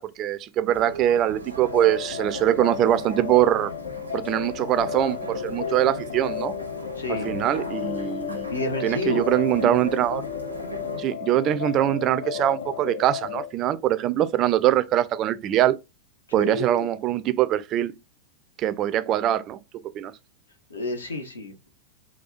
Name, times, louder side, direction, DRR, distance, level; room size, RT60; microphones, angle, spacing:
voice 1, 0.0-3.7 4.1-6.5 7.2-8.5 8.8-10.2 11.0-15.8 16.3-17.9 18.6-19.6 19.9-20.1, right 12 dB, 35° right, 0.3 m, -23 dB
sound 1, 0.7-11.0, right 2 dB, 85° right, 0.6 m, -37 dB
sound 2, 1.6-13.5, left 11 dB, 60° left, 0.3 m, -34 dB
voice 2, 7.0-7.4 8.5-9.3 16.4-16.9 20.7-21.7, left 1 dB, 75° left, 0.8 m, -30 dB
4.2 x 2.3 x 2.3 m
figure-of-eight pair, 90°, 0 cm